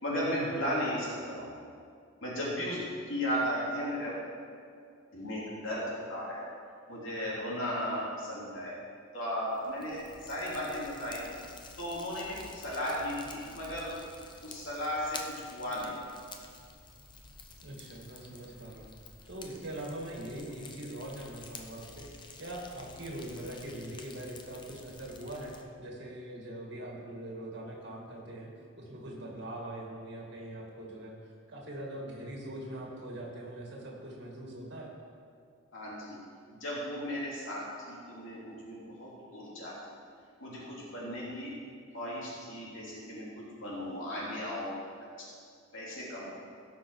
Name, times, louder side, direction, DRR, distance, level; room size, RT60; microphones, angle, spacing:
voice 1, 0.0-1.6 2.2-4.1 5.1-6.5 6.9-8.8 9.1-11.3 11.8-14.0 14.4-15.9 35.7-36.2 36.5-37.6 37.9-39.7 40.4-41.5 41.9-44.8 45.7-46.2, equal, 70° left, -6 dB, 2.9 m, -35 dB
Fire, 9.4-25.6, left 4 dB, 20° left, 0.6 m, -50 dB
voice 2, 17.6-18.9 19.3-25.5 25.8-28.5 28.8-34.9, right 1 dB, 55° right, -1 dB, 2.1 m, -42 dB
17.0 x 5.9 x 4.7 m, 2.3 s
head